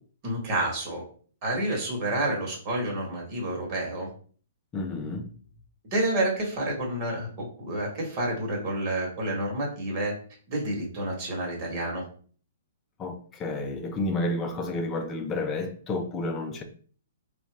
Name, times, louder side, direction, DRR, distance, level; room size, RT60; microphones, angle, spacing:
voice 1, 0.2-1.0 1.4-4.1 5.9-10.1 10.5-12.0, right 1 dB, 35° right, 1.5 m, -29 dB
voice 2, 4.7-5.3 13.0-16.6, left 2 dB, 20° left, 0.6 m, -30 dB
4.0 x 2.5 x 3.3 m
hypercardioid pair, 140°, 0 cm